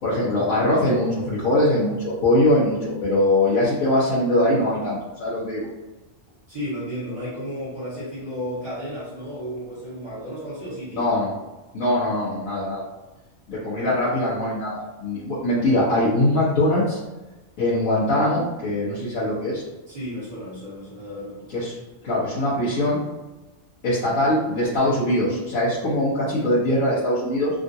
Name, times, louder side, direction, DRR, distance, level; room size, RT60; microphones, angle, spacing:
voice 1, 0.0-5.7 10.9-11.3 11.7-12.8 13.5-17.0 17.6-19.6 21.5-21.7 22.0-23.0 23.8-27.5, left 1 dB, 85° left, -10 dB, 1.3 m, -22 dB
voice 2, 6.5-11.2 19.9-21.6, equal, 25° right, -13 dB, 1.6 m, -33 dB
3.5 x 2.4 x 2.7 m, 1.1 s
omnidirectional pair, 1.3 m